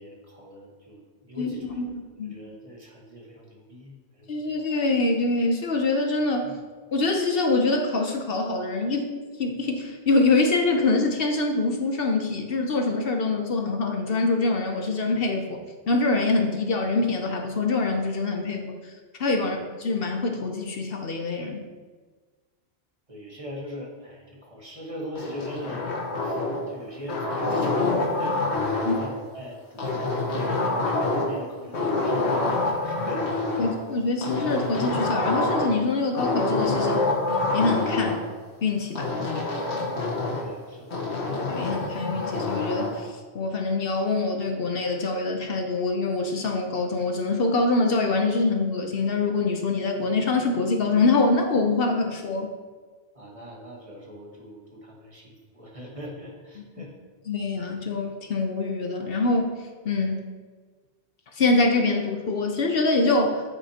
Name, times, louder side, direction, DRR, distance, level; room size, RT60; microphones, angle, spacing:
voice 1, 0.0-1.8 2.2-4.6 6.4-6.6 19.4-19.5 23.1-33.7 40.4-41.0 53.1-56.9, equal, 30° right, -2 dB, 1.5 m, -41 dB
voice 2, 1.4-1.9 2.2-2.3 4.3-6.5 6.9-9.1 9.4-18.8 19.2-21.6 28.8-28.9 33.6-37.0 37.5-38.2 38.6-39.5 41.5-52.5 57.3-59.6 59.8-60.3 61.3-63.4, left 3 dB, 60° left, 4 dB, 1.0 m, -25 dB
sound 1, 25.2-26.7 27.1-29.1 29.8-31.4 31.7-33.7 34.2-35.8 36.2-38.2 39.0-40.5 40.9-42.9, left 2 dB, 80° left, 1.8 m, -26 dB
8.5 x 8.2 x 2.9 m, 1.4 s
omnidirectional pair, 1.1 m